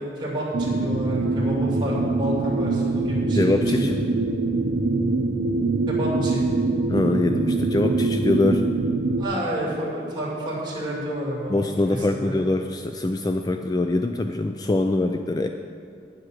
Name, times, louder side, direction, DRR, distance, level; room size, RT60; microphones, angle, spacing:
voice 1, 0.0-4.0 5.9-6.4 9.2-12.4, right 1 dB, 25° right, -5 dB, 2.7 m, -30 dB
sound 1, 0.5-9.2, right 3 dB, 85° right, 0.6 m, -24 dB
voice 2, 3.3-4.0 6.9-8.6 11.5-15.5, left 2 dB, 20° left, 6 dB, 0.3 m, -23 dB
10.0 x 7.6 x 6.4 m, 2.4 s
head